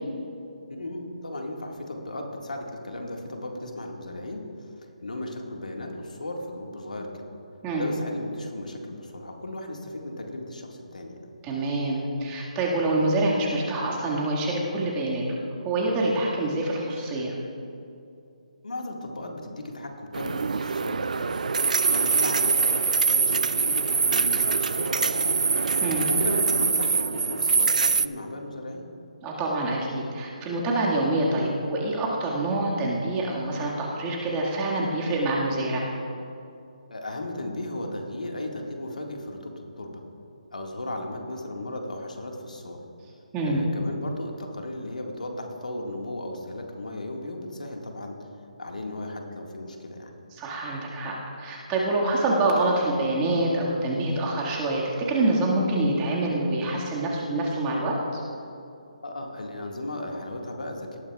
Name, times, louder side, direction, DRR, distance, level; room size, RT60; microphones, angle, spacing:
voice 1, 0.7-7.3 7.8-11.2 18.6-25.5 26.1-28.8 36.9-40.0 40.5-42.8 43.4-48.3 48.6-50.2 59.0-61.0, left 1 dB, 85° left, 1 dB, 1.9 m, -36 dB
voice 2, 11.4-15.2 15.6-17.3 25.8-26.0 29.2-35.9 43.3-43.6 50.3-58.2, right 2 dB, 20° right, -3 dB, 1.9 m, -26 dB
sound 1, 20.1-28.1, right 5 dB, 75° right, 0.3 m, -24 dB
18.5 x 12.5 x 2.4 m, 2.6 s
figure-of-eight pair, 150°, 4 cm